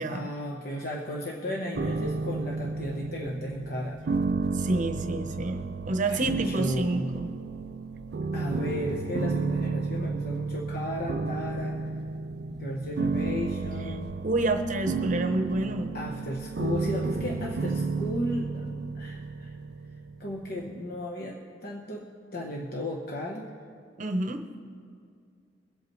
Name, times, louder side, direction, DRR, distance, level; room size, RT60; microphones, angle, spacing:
voice 1, 0.1-4.0 6.1-7.1 8.3-11.8 12.5-14.1 15.9-19.6 20.2-23.5, left 1 dB, 55° left, -2 dB, 1.0 m, -35 dB
sound 1, 1.8-20.7, right 4 dB, 60° right, 0.4 m, -32 dB
voice 2, 4.5-7.3 14.2-15.9 24.0-24.4, right 2 dB, 40° right, 6 dB, 0.8 m, -28 dB
23.0 x 8.2 x 3.1 m, 2.2 s
head